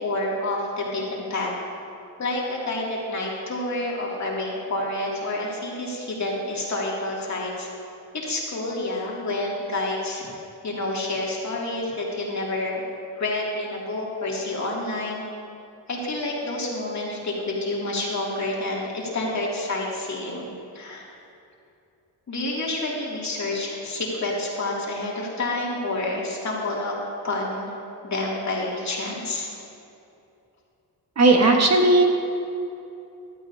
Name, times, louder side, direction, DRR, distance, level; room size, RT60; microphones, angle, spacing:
voice 1, 0.0-1.5 2.2-7.7 8.1-10.3 10.6-12.8 13.2-15.2 15.9-20.5 20.7-21.0 22.3-26.9 27.2-27.7 28.0-29.5, left 2 dB, 45° left, -3 dB, 2.6 m, -28 dB
voice 2, 31.2-32.0, right 2 dB, 40° right, 1 dB, 1.4 m, -16 dB
14.5 x 12.0 x 2.7 m, 2.7 s
cardioid pair, 85°, 38 cm